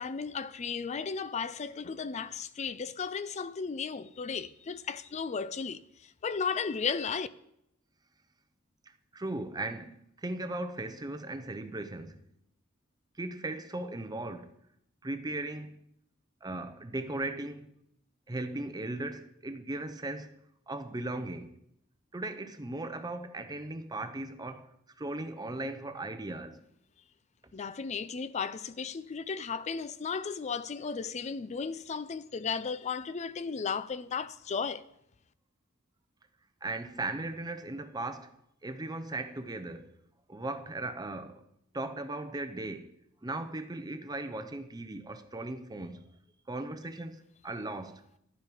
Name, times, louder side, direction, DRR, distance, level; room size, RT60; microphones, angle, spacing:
voice 1, 0.0-7.3 27.5-34.8, left 5 dB, 35° left, 0.4 m, -35 dB
voice 2, 9.1-12.2 13.2-14.5 15.0-15.8 16.4-17.7 18.3-20.3 20.7-21.5 22.1-24.7 25.0-26.6 36.6-38.4 38.6-39.9 40.3-41.4 41.7-42.9 43.2-46.0 46.5-48.0, right 2 dB, 20° right, 0.7 m, -37 dB
11.0 x 9.8 x 4.9 m
head